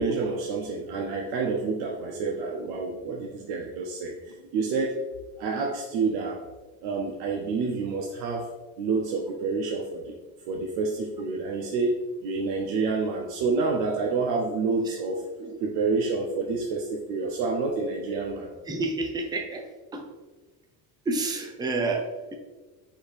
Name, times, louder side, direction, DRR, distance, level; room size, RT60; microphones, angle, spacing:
voice 1, 0.0-5.0 5.4-6.4 6.8-8.5 8.8-10.1 10.5-18.5, right 4 dB, 80° right, 0 dB, 0.6 m, -28 dB
voice 2, 18.7-20.1 21.1-22.3, right 3 dB, 10° right, 3 dB, 0.4 m, -30 dB
4.2 x 2.6 x 3.2 m, 1.2 s
cardioid pair, 115°, 37 cm